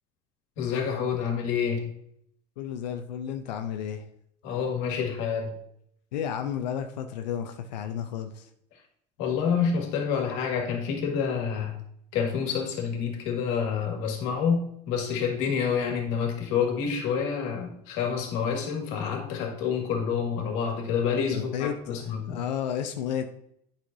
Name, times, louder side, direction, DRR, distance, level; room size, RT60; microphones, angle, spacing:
voice 1, 0.6-1.9 4.4-5.5 9.2-11.8 12.1-22.4, left 6 dB, 70° left, 2 dB, 1.8 m, -28 dB
voice 2, 2.6-4.0 6.1-8.5 21.3-23.3, left 8 dB, 90° left, 6 dB, 0.6 m, -32 dB
8.5 x 5.7 x 2.6 m, 0.71 s
hypercardioid pair, 85°, 21 cm